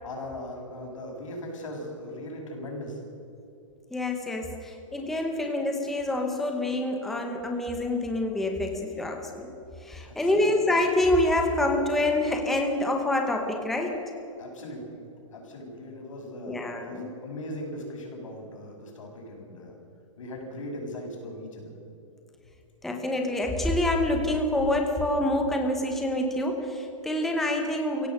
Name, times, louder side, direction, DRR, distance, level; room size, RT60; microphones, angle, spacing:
voice 1, 0.0-3.0 10.0-10.5 14.4-15.0 15.3-19.7 20.2-21.7, left 1 dB, 70° left, 1 dB, 6.9 m, -39 dB
voice 2, 3.9-9.5 9.8-14.0 16.4-17.1 22.8-28.1, left 1 dB, ahead, 2 dB, 0.8 m, -26 dB
24.5 x 16.5 x 6.6 m, 2.8 s
hypercardioid pair, 180°, 17 cm